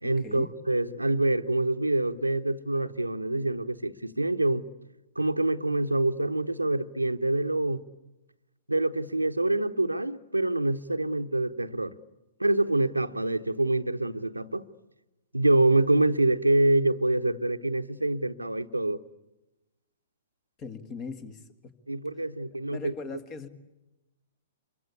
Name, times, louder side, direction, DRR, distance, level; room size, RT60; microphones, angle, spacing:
voice 1, 0.0-4.7 5.2-7.8 8.7-12.0 12.4-14.7 15.3-19.0 21.9-22.9, right 2 dB, 85° right, 0.9 m, -26 dB
voice 2, 20.6-21.5 22.7-23.5, left 4 dB, 25° left, 2.0 m, -39 dB
26.5 x 23.5 x 8.3 m
figure-of-eight pair, 110°, 0 cm